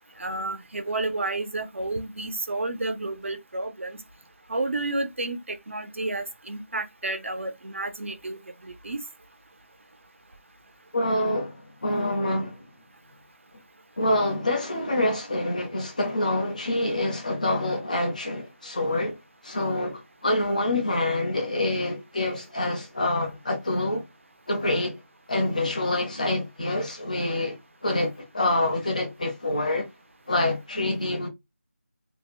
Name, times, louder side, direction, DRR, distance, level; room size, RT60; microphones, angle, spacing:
voice 1, 0.2-4.0 4.5-8.4 8.6-9.0, right 2 dB, 65° right, 0.6 m, -31 dB
voice 2, 10.9-12.6 14.0-19.2 19.4-24.1 24.5-25.0 25.3-27.6 27.8-29.9 30.3-31.3, left 1 dB, 35° left, 0.7 m, -26 dB
2.9 x 2.0 x 2.5 m
figure-of-eight pair, 175°, 7 cm